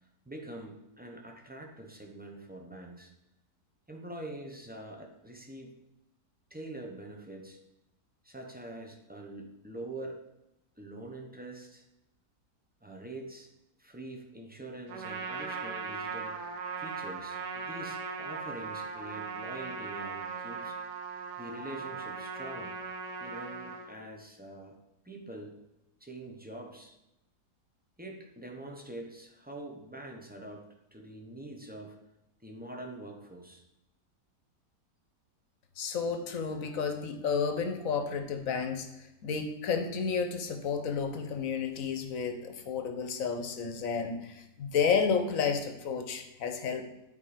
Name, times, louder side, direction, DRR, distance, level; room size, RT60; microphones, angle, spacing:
voice 1, 0.2-3.1 3.9-5.7 6.5-7.6 8.2-10.2 10.8-11.8 12.8-13.5 13.8-16.5 16.8-20.8 21.4-22.8 23.2-24.8 25.0-25.6 26.0-26.9 28.0-32.0 32.4-33.6, right 1 dB, 10° right, 1 dB, 0.6 m, -44 dB
Trumpet, 14.9-23.9, right 5 dB, 80° right, 1.6 m, -39 dB
voice 2, 35.8-38.9 39.2-46.9, left 6 dB, 60° left, 7 dB, 1.2 m, -31 dB
10.0 x 4.5 x 5.0 m, 0.88 s
omnidirectional pair, 1.8 m